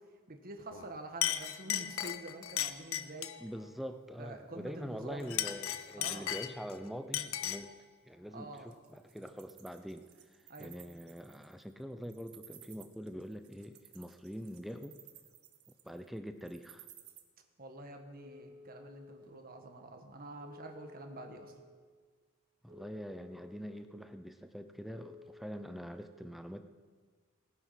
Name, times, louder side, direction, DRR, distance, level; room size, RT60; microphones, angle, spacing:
voice 1, 0.3-3.3 4.2-5.4 6.0-6.3 8.3-8.7 10.5-10.7 17.6-21.5, right 2 dB, 40° right, 4 dB, 1.5 m, -47 dB
Chink clink, 0.7-0.9 1.2-3.4 5.2-6.7 7.1-7.7, left 11 dB, 65° left, 0.6 m, -36 dB
voice 2, 3.4-7.7 8.1-10.1 10.6-15.0 15.8-16.9 22.6-26.6, equal, ahead, 8 dB, 0.6 m, -44 dB
Wild animals, 8.6-17.2, right 13 dB, 80° right, 1.3 m, -57 dB
Telephone, 18.1-19.2 20.4-21.5 22.7-23.8 24.9-26.0, left 3 dB, 20° right, 2.5 m, -54 dB
19.0 x 9.4 x 5.8 m, 1.5 s
head